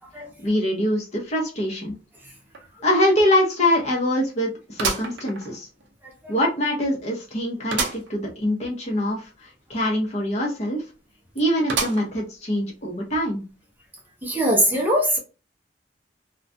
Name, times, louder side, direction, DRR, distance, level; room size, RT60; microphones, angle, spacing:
voice 1, 0.4-1.9 2.8-5.7 6.3-10.8 11.3-13.4, left 1 dB, 40° left, -1 dB, 0.7 m, -24 dB
sound 1, 2.5-2.6 3.1-3.2 4.8-5.9 6.4-6.5 7.7-8.1 8.5-8.6 8.8-8.9 11.7-12.3 12.9-13.0 14.0-14.1, right 4 dB, 75° right, 0.5 m, -28 dB
voice 2, 14.2-15.2, equal, 10° right, -1 dB, 0.5 m, -21 dB
2.3 x 2.2 x 2.5 m, 0.33 s
head